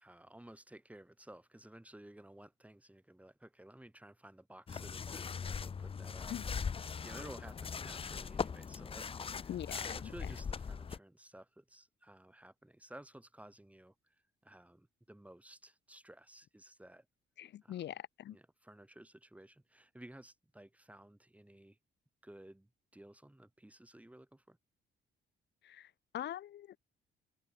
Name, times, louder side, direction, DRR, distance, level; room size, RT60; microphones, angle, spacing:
voice 1, 0.0-14.2 14.4-17.1 17.6-17.9 18.3-21.8 22.2-24.6, right 1 dB, 5° right, 7.1 m, -55 dB
sound 1, 4.7-11.0, left 6 dB, 30° left, 0.6 m, -40 dB
voice 2, 9.5-10.1 17.4-18.4 25.6-26.8, left 11 dB, 60° left, 0.7 m, -43 dB
open air
cardioid pair, 90°, 20 cm